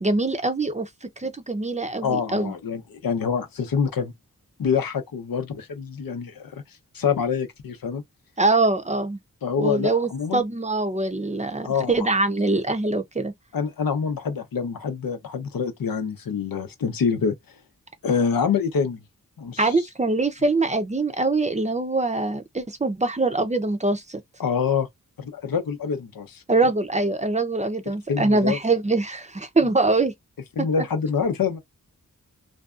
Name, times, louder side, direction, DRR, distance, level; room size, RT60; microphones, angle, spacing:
voice 1, 0.0-2.5 8.4-9.2 9.6-13.3 19.6-24.2 26.5-30.1 30.6-30.7, right 3 dB, 20° right, 0.5 m, -23 dB
voice 2, 2.0-4.1 4.6-6.5 6.9-8.0 9.4-10.4 11.6-12.1 13.5-17.3 18.0-19.0 19.4-19.7 24.4-24.9 25.2-26.4 28.1-28.6 30.6-31.6, left 6 dB, 85° left, 0.7 m, -26 dB
2.6 x 2.4 x 2.3 m
cardioid pair, 40°, 34 cm